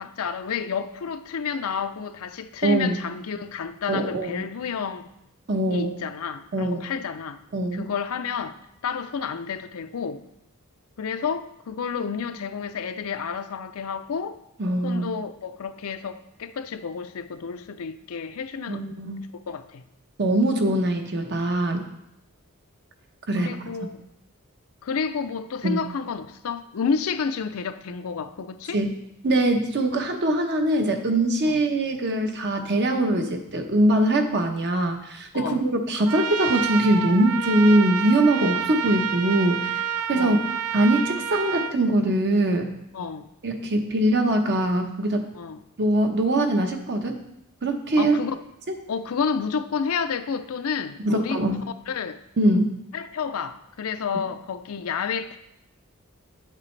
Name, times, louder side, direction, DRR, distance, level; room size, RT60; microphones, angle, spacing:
voice 1, 0.0-5.1 5.7-7.4 7.7-8.6 8.8-10.2 11.0-14.4 14.8-18.8 19.5-19.8 23.4-24.0 24.8-28.8 31.5-31.6 35.3-35.6 40.2-40.5 42.9-43.3 45.3-45.6 48.0-48.4 48.9-51.4 51.9-52.2 52.9-55.4, left 6 dB, 75° left, 0.5 m, -30 dB
voice 2, 2.6-3.0 3.9-4.5 5.5-5.9 6.5-6.8 7.5-7.8 14.6-15.1 18.7-19.2 20.2-21.9 23.3-23.5 25.6-25.8 28.7-28.9 29.2-39.8 40.1-40.4 40.7-42.7 43.4-45.3 45.8-47.2 47.6-48.2 51.0-51.6 52.4-52.7, right 1 dB, 50° right, 0.9 m, -22 dB
Trumpet, 36.1-41.8, right 8 dB, 85° right, 0.5 m, -28 dB
8.0 x 7.5 x 3.2 m
head